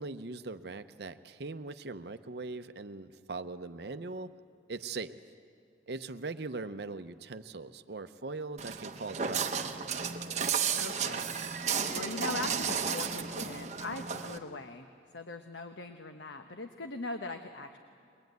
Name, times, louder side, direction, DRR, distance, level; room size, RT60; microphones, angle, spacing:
voice 1, 0.0-4.3 4.7-5.1 5.9-9.8, right 3 dB, 65° right, 10 dB, 0.7 m, -40 dB
Walk footsteps, 8.6-14.4, right 6 dB, 40° right, 0.9 m, -33 dB
voice 2, 10.7-11.3 11.9-14.9 15.1-17.8, left 3 dB, 85° left, 6 dB, 1.0 m, -40 dB
22.0 x 21.0 x 9.3 m, 2.3 s
head